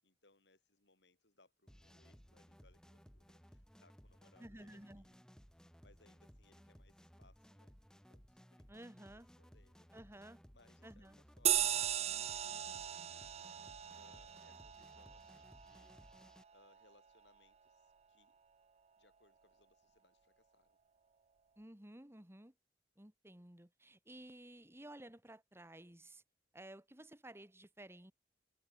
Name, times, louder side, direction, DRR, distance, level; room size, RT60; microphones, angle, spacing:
voice 1, 0.0-5.2 5.8-9.1 9.4-10.1 10.5-13.2 13.9-16.2 16.5-18.4 19.0-20.8, left 2 dB, 75° left, 7.4 m, -71 dB
sound 1, 1.7-16.4, equal, 5° left, 3.8 m, -61 dB
voice 2, 4.4-5.0 8.7-9.3 9.9-10.4 10.8-11.2 21.6-22.5 23.0-26.2 26.5-28.1, right 1 dB, 15° right, 2.1 m, -54 dB
sound 2, 11.5-16.4, right 11 dB, 35° right, 0.5 m, -38 dB
head